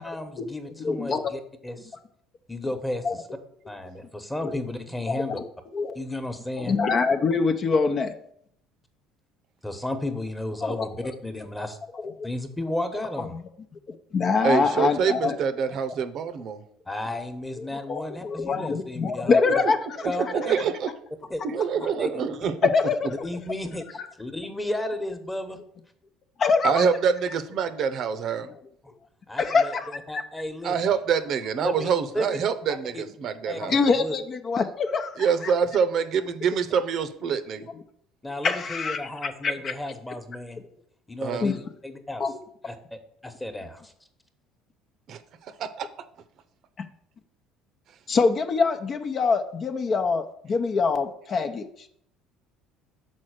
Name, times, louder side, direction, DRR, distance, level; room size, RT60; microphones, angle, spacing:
voice 1, 0.0-1.9 2.5-3.0 3.7-5.4 5.9-6.8 9.6-11.8 12.2-13.4 16.9-19.4 20.0-20.6 21.3-21.4 22.0-22.1 22.4-22.5 23.2-25.6 29.3-30.7 31.6-32.4 32.9-33.0 33.5-34.1 38.2-40.6 41.1-42.2 42.6-43.9, left 1 dB, 10° left, 7 dB, 1.2 m, -33 dB
voice 2, 0.8-1.2 3.0-3.2 4.4-4.6 5.1-5.5 5.7-6.0 6.6-8.2 10.6-11.1 11.9-12.3 13.3-13.4 14.1-15.4 17.6-20.1 21.8-21.9 22.7-23.1 26.4-26.9 29.4-30.2 33.6-35.5 36.3-36.4 38.4-39.7 41.4-41.6 42.2-42.4 48.1-51.9, left 4 dB, 45° left, 6 dB, 0.7 m, -25 dB
voice 3, 14.4-16.6 20.0-20.9 21.4-22.7 26.6-28.5 30.6-33.8 35.2-37.7 41.2-41.5 45.1-45.9, right 6 dB, 60° right, 11 dB, 0.7 m, -26 dB
6.3 x 4.3 x 6.5 m, 0.69 s
supercardioid pair, 75°, 0 cm